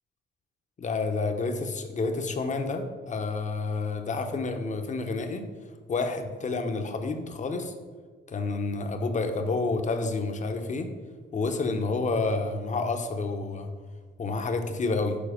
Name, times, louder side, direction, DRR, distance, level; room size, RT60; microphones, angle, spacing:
voice 1, 0.8-5.4 5.9-7.7 8.3-10.9 11.3-13.7 14.2-15.2, left 3 dB, 40° left, 6 dB, 0.9 m, -29 dB
7.2 x 4.0 x 5.0 m, 1.5 s
cardioid pair, 90°, 20 cm